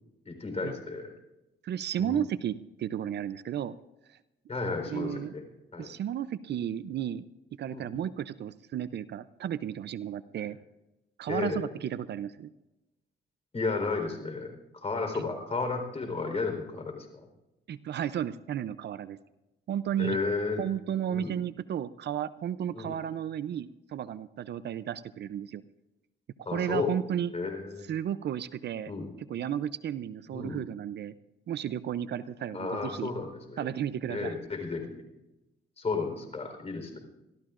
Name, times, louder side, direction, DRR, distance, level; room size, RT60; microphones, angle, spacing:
voice 1, 0.3-1.1 2.0-2.3 4.5-5.4 5.7-5.9 7.7-7.9 11.3-11.7 13.5-17.1 20.0-20.7 21.1-21.3 22.7-23.0 26.4-27.0 27.3-27.9 28.9-29.1 30.3-30.6 32.5-33.7 34.1-35.0 35.8-37.0, left 4 dB, 30° left, 4 dB, 4.1 m, -33 dB
voice 2, 1.6-3.8 4.1-4.2 4.9-5.3 5.8-7.2 7.6-10.6 11.2-12.5 17.7-19.2 19.7-20.2 20.6-25.6 26.5-27.3 27.9-28.9 29.3-31.1 31.5-33.1 33.6-34.4, right 10 dB, 60° right, 15 dB, 0.6 m, -33 dB
25.0 x 14.0 x 2.5 m, 0.98 s
cardioid pair, 90°, 20 cm